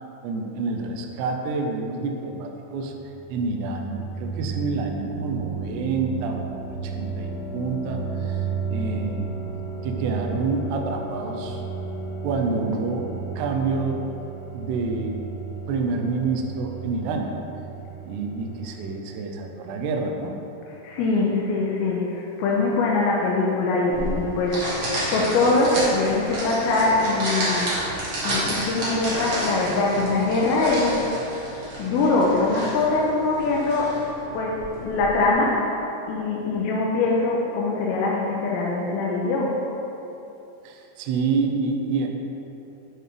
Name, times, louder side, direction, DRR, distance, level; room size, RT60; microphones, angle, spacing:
voice 1, 0.2-2.9 3.3-9.3 9.8-11.6 12.2-13.1 13.4-14.0 14.5-15.2 15.7-17.3 18.1-20.3 40.6-42.1, right 4 dB, 80° right, 2 dB, 2.6 m, -28 dB
sound 1, 2.8-19.5, right 5 dB, 65° left, 1.6 m, -33 dB
voice 2, 20.8-27.7 28.2-31.1 31.8-34.0 34.3-35.7 36.1-39.6, left 3 dB, 85° left, -3 dB, 2.2 m, -23 dB
sound 2, 23.9-35.3, right 1 dB, 55° right, 1.6 m, -31 dB
8.7 x 6.5 x 3.3 m, 3.0 s
omnidirectional pair, 5.2 m